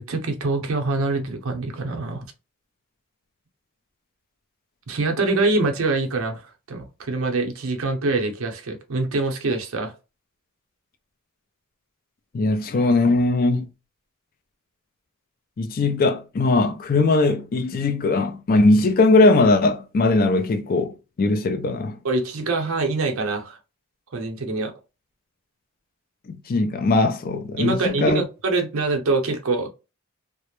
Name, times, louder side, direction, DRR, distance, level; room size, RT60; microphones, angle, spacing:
voice 1, 0.0-2.3 4.9-9.9 22.0-23.6 24.1-24.7 27.6-29.7, right 3 dB, 65° right, 0.6 m, -24 dB
voice 2, 12.3-13.7 15.6-22.0 26.3-28.2, left 2 dB, 45° left, 0.4 m, -20 dB
2.2 x 2.0 x 2.9 m
head